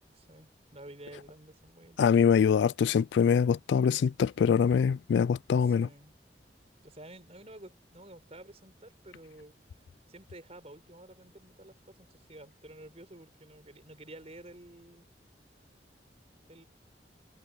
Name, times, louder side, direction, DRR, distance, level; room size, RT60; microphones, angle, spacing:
voice 1, 0.2-2.0 5.6-6.1 6.8-9.5 10.1-15.1 16.5-16.6, right 1 dB, 35° right, 4.8 m, -51 dB
voice 2, 2.0-5.9, left 7 dB, 90° left, 0.3 m, -24 dB
head